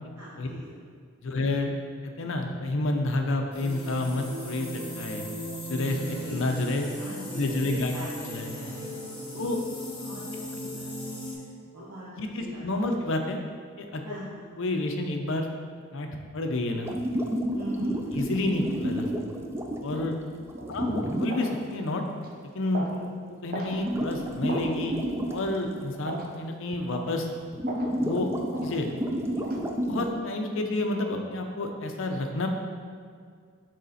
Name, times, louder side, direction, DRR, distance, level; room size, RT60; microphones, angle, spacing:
voice 1, 0.2-0.8 6.0-6.4 7.0-8.1 8.4-8.9 9.4-9.8 10.0-11.1 11.7-12.1 12.4-13.0 14.0-14.4 17.5-18.0 20.3-20.4 20.7-21.1 22.9-23.1, right 1 dB, 80° right, -8 dB, 1.0 m, -42 dB
voice 2, 1.2-1.7 2.0-5.3 5.7-6.9 7.3-7.9 8.2-8.6 9.3-9.6 12.2-13.4 13.8-14.0 14.6-15.5 15.9-16.1 16.3-16.9 18.1-19.1 19.8-20.2 20.7-22.0 22.5-22.9 23.4-25.0 25.3-27.3 28.0-28.3 28.6-28.9 29.8-32.5, left 2 dB, 60° left, 4 dB, 0.6 m, -29 dB
sound 1, 3.5-11.3, equal, 25° left, 1.4 m, -37 dB
sound 2, 16.8-21.3 23.4-23.5 23.7-26.0 26.2-26.3 26.7-26.8 27.4-30.1, equal, 10° right, 0.3 m, -30 dB
sound 3, 20.6-20.7 21.3-21.5 22.1-22.3 22.7-23.0 23.5-23.8 24.5-24.7 25.3-25.5 26.1-26.3 26.9-27.1 27.7-27.9 28.5-28.7 29.4-29.6, right 2 dB, 40° right, 0.7 m, -37 dB
6.5 x 4.1 x 4.1 m, 2.1 s
head